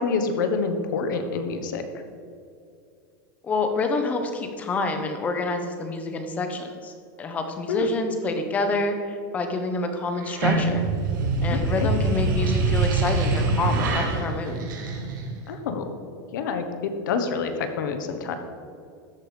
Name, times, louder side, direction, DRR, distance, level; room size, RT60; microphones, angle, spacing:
voice 1, 0.0-1.8 7.7-7.9 11.7-11.9 15.5-15.8 16.3-18.4, left 5 dB, 75° left, 7 dB, 1.2 m, -27 dB
voice 2, 3.4-6.9 7.2-10.9 11.4-14.7, left 3 dB, 15° left, 6 dB, 0.7 m, -27 dB
sound 1, 10.2-15.5, right 3 dB, 80° right, 1.9 m, -24 dB
13.0 x 5.2 x 4.9 m, 2.4 s
supercardioid pair, 180°, 10 cm